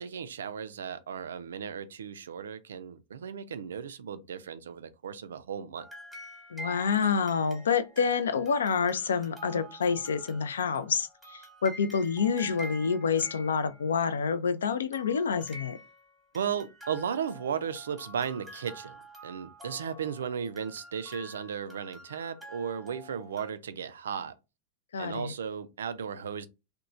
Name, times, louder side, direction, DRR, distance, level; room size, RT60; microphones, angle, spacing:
voice 1, 0.0-5.9 16.3-24.4 25.0-26.5, right 7 dB, 65° right, 0.3 m, -35 dB
sound 1, 5.8-14.1 14.9-23.5, right 1 dB, ahead, 1.0 m, -48 dB
voice 2, 6.5-15.8 24.9-25.3, left 6 dB, 65° left, 0.3 m, -28 dB
2.9 x 2.1 x 2.5 m
figure-of-eight pair, 90°, 0 cm